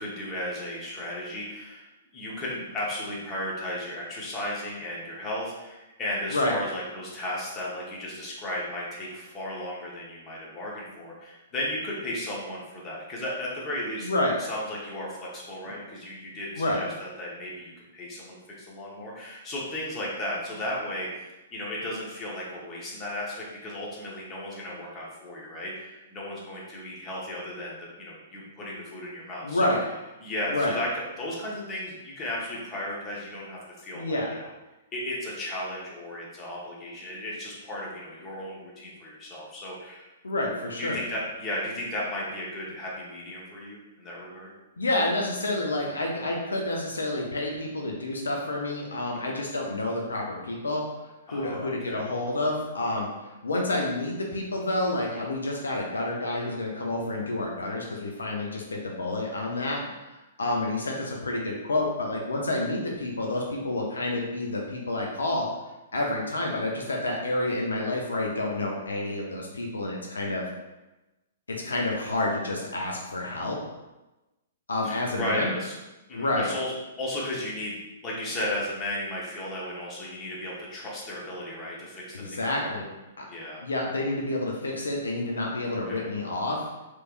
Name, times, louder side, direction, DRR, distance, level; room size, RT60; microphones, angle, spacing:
voice 1, 0.0-14.1 14.4-21.1 21.5-29.7 30.2-34.5 34.9-40.1 40.8-44.5 49.1-49.3 51.3-52.0 55.1-55.2 74.8-75.7 76.1-77.8 78.0-82.9 83.3-83.6 85.9-86.1, left 1 dB, 25° left, -4 dB, 1.1 m, -35 dB
voice 2, 14.0-14.4 16.6-16.8 29.4-29.8 30.5-30.7 33.9-34.4 40.2-41.0 44.8-50.8 51.3-53.1 53.4-59.8 60.4-65.5 65.9-70.4 71.5-73.6 74.7-75.5 76.1-76.5 82.1-82.9 83.2-83.3 83.6-86.6, left 2 dB, 80° left, -1 dB, 0.6 m, -29 dB
3.2 x 3.1 x 2.5 m, 1.0 s
hypercardioid pair, 120°, 0 cm